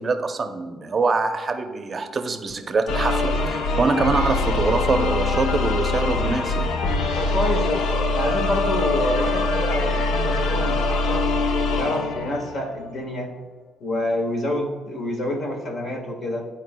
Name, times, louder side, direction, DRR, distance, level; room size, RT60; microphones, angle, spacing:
voice 1, 0.0-6.7, right 4 dB, 40° right, 7 dB, 0.6 m, -24 dB
sound 1, 2.9-12.8, left 3 dB, 85° left, 0.6 m, -23 dB
voice 2, 7.2-7.8 8.1-11.3 11.7-13.3 13.8-16.5, left 1 dB, 60° left, 1 dB, 1.7 m, -27 dB
12.0 x 4.4 x 2.2 m, 1.4 s
cardioid pair, 90°, 0 cm